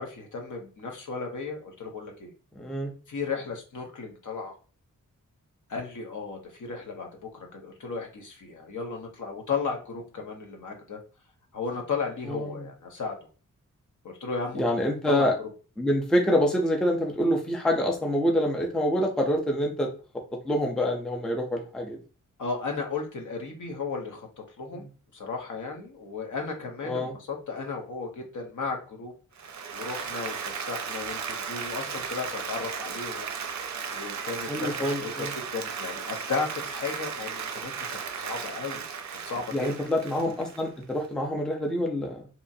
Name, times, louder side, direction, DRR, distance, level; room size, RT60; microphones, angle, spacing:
voice 1, 0.0-2.3 3.1-4.5 5.7-11.0 11.5-13.2 14.0-14.6 15.1-15.3 22.4-24.8 25.1-29.1 29.7-33.3 33.9-35.3 35.5-39.7, left 4 dB, 65° left, 2 dB, 0.8 m, -35 dB
voice 2, 2.5-2.9 12.3-12.7 14.6-15.3 15.8-19.9 20.4-22.0 24.7-24.9 26.8-27.1 34.5-35.3 39.5-42.3, left 1 dB, ahead, 1 dB, 0.4 m, -26 dB
Applause, 29.3-41.1, right 6 dB, 60° right, 0.5 m, -35 dB
2.8 x 2.4 x 2.6 m, 0.37 s
wide cardioid pair, 170°, 32 cm